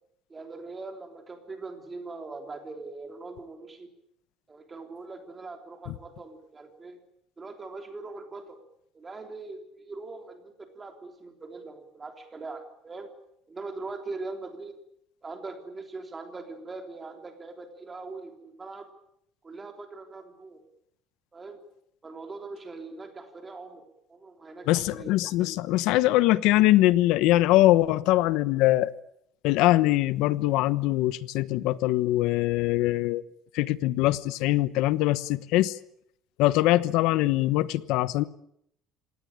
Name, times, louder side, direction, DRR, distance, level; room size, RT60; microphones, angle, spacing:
voice 1, 0.3-3.9 4.5-7.0 7.4-8.6 8.9-13.1 13.5-14.8 15.2-18.9 19.4-20.6 21.3-21.6 22.0-25.1, right 3 dB, 15° right, 3.4 m, -41 dB
voice 2, 24.7-28.9 29.4-33.2 33.5-35.8 36.4-38.2, left 16 dB, 70° left, 1.1 m, -22 dB
26.0 x 18.0 x 8.9 m
cardioid pair, 170°, 0 cm